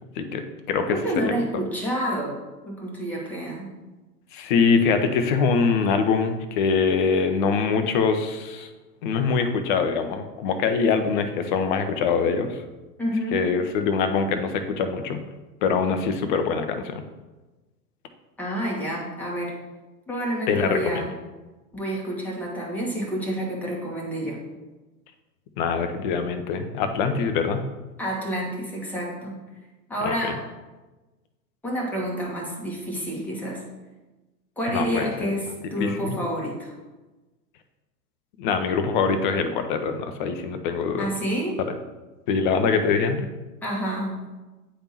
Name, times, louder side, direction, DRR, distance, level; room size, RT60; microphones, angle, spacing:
voice 1, 0.2-1.0 1.2-1.3 4.3-8.7 9.0-12.6 13.3-15.2 15.6-17.0 20.5-21.1 25.6-27.6 30.0-30.3 34.7-35.3 35.8-36.2 38.4-41.1 42.3-43.3, left 5 dB, 30° left, 8 dB, 0.5 m, -23 dB
voice 2, 0.9-2.4 2.6-3.7 13.0-13.4 18.4-19.6 20.1-21.1 21.7-24.4 28.0-29.4 29.9-30.4 31.6-33.6 34.6-36.7 41.0-41.6 43.6-44.2, equal, 5° left, -4 dB, 1.2 m, -29 dB
9.6 x 3.4 x 2.9 m, 1.2 s
figure-of-eight pair, 100°, 49 cm